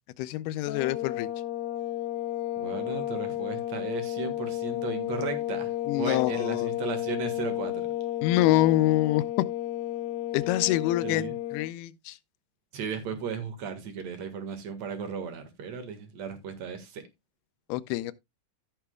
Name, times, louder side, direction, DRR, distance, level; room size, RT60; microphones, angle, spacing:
voice 1, 0.2-1.3 5.9-6.7 8.2-9.2 10.3-11.3 11.5-12.2 17.7-18.1, left 15 dB, 90° left, 2.6 m, -25 dB
sound 1, 0.7-11.7, left 14 dB, 75° left, 2.9 m, -32 dB
voice 2, 2.6-7.9 11.0-11.4 12.7-17.0, right 6 dB, 55° right, 2.5 m, -36 dB
16.0 x 5.9 x 2.3 m
omnidirectional pair, 4.4 m